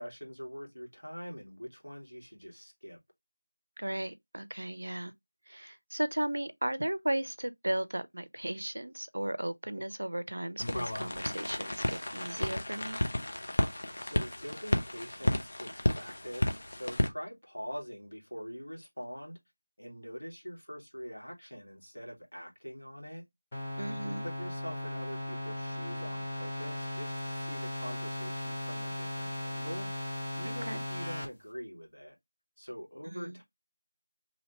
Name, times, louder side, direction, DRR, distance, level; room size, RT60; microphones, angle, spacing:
voice 1, 0.0-3.0 14.0-19.4 19.8-23.2 23.8-29.9 30.3-32.1 32.6-33.4, equal, 85° left, 1.6 m, -44 dB
voice 2, 3.8-5.1 5.5-13.0 23.8-24.3 30.4-30.8 33.0-33.4, right 1 dB, 60° right, 0.4 m, -35 dB
sound 1, 10.6-17.1, left 1 dB, 40° left, 0.5 m, -32 dB
sound 2, 23.5-31.3, left 1 dB, 15° left, 0.9 m, -37 dB
3.0 x 2.7 x 2.8 m
figure-of-eight pair, 170°, 0 cm